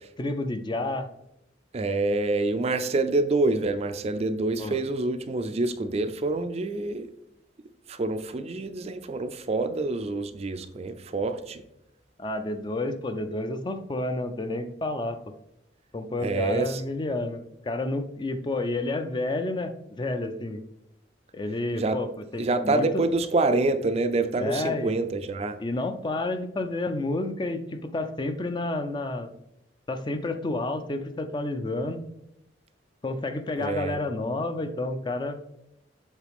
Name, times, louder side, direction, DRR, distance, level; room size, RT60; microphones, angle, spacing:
voice 1, 0.2-1.1 4.6-4.8 12.2-15.3 15.9-20.6 21.3-23.0 24.4-24.9 25.6-29.3 29.9-32.0 33.0-35.4, left 2 dB, 25° left, 8 dB, 0.4 m, -30 dB
voice 2, 1.7-7.1 7.9-11.6 16.2-16.8 21.8-22.0 22.4-25.6 33.6-34.0, right 2 dB, 35° right, 9 dB, 0.4 m, -26 dB
7.3 x 3.8 x 3.5 m, 0.83 s
head